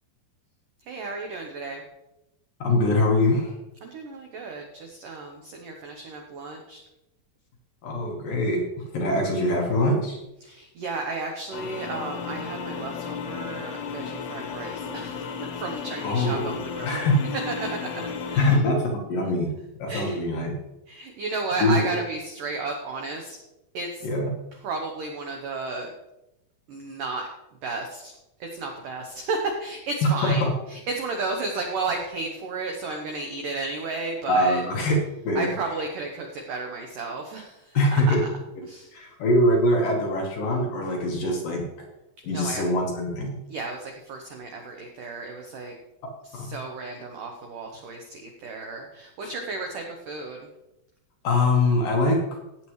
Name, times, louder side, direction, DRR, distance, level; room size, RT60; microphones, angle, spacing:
voice 1, 0.9-1.8 3.8-6.8 10.4-17.0 17.5-18.5 19.9-20.2 20.9-23.4 23.7-24.1 24.6-25.9 26.7-27.3 27.6-28.1 28.4-34.6 35.4-38.2 38.6-38.9 42.3-42.6 43.5-45.7 46.2-50.5, right 3 dB, 80° right, 2 dB, 1.9 m, -33 dB
voice 2, 2.6-3.5 7.8-8.6 8.9-10.2 16.0-16.6 16.8-17.2 18.4-19.5 19.8-20.5 21.6-21.8 24.0-24.3 30.0-30.5 34.3-34.9 35.2-35.5 37.7-38.2 38.9-41.6 42.2-43.4 46.3-46.5 51.2-52.2, left 1 dB, 60° left, -1 dB, 2.5 m, -23 dB
sound 1, 11.5-18.6, left 6 dB, 80° left, 3.5 m, -34 dB
15.0 x 8.7 x 3.2 m, 0.92 s
omnidirectional pair, 5.3 m